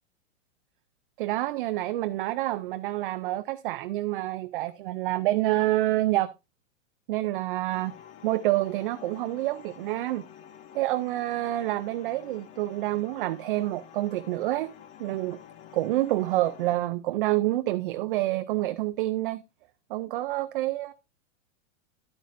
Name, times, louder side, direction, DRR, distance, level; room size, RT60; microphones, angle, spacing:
voice 1, 1.2-6.3 7.1-7.9 8.2-10.3 10.7-14.7 15.0-15.4 15.7-19.4 19.9-20.9, right 16 dB, 45° right, 0.4 m, -27 dB
sound 1, 7.7-16.8, left 10 dB, 20° left, 0.5 m, -49 dB
11.0 x 9.2 x 2.5 m
supercardioid pair, 150°, 38 cm